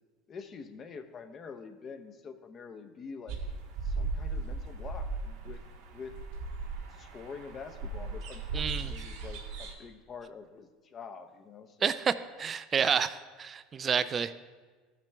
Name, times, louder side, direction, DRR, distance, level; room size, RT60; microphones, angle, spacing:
voice 1, 0.3-3.4 3.8-5.6 5.9-6.1 6.9-12.0, left 5 dB, 35° left, 7 dB, 0.8 m, -46 dB
sound 1, 3.3-9.7, right 3 dB, 75° right, 1.4 m, -37 dB
voice 2, 8.5-8.9 11.8-12.1 12.4-14.3, right 7 dB, 30° right, 13 dB, 0.4 m, -29 dB
14.0 x 6.0 x 3.4 m, 1.4 s
supercardioid pair, 110°, 0 cm